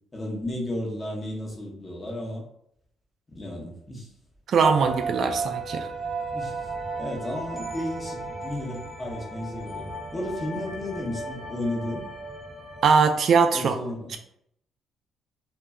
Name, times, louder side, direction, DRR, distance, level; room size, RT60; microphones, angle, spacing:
voice 1, 0.1-2.4 3.3-4.1 6.3-6.7 7.0-12.1 13.5-14.1, left 1 dB, 25° left, -2 dB, 0.9 m, -33 dB
voice 2, 4.5-5.9 12.8-13.8, right 5 dB, 60° right, 6 dB, 0.4 m, -21 dB
sound 1, 4.6-12.9, right 3 dB, 5° right, 0.8 m, -34 dB
2.2 x 2.1 x 3.5 m, 0.72 s
cardioid pair, 90°, 0 cm